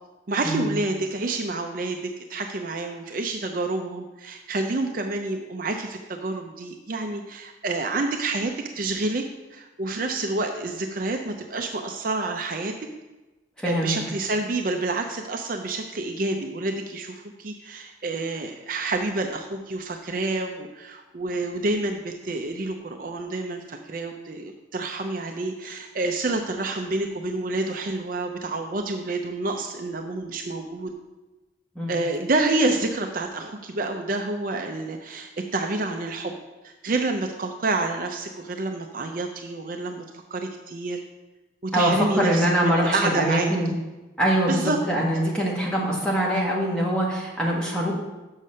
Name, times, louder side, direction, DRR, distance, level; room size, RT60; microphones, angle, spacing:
voice 1, 0.3-9.2 9.5-12.9 13.6-30.9 31.9-36.3 36.6-40.0 40.3-41.0 41.6-43.7 44.5-44.8, right 2 dB, 45° right, 4 dB, 0.5 m, -28 dB
voice 2, 13.6-14.0 31.7-32.0 41.7-43.7 44.2-47.9, equal, 5° left, -4 dB, 1.6 m, -23 dB
6.7 x 6.4 x 5.5 m, 1.1 s
head